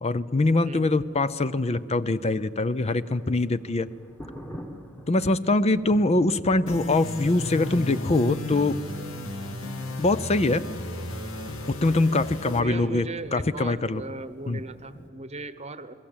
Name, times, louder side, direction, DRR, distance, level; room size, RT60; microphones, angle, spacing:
voice 1, 0.0-3.9 5.1-8.8 10.0-10.6 11.7-14.0 14.5-14.6, left 2 dB, 30° left, 14 dB, 0.6 m, -23 dB
Thunder, 2.3-15.1, equal, 10° left, 1.5 m, -46 dB
sound 1, 6.7-12.6, left 1 dB, 65° left, 2.4 m, -34 dB
voice 2, 12.5-15.9, right 2 dB, 30° right, 14 dB, 1.0 m, -37 dB
28.0 x 21.5 x 8.8 m, 2.5 s
head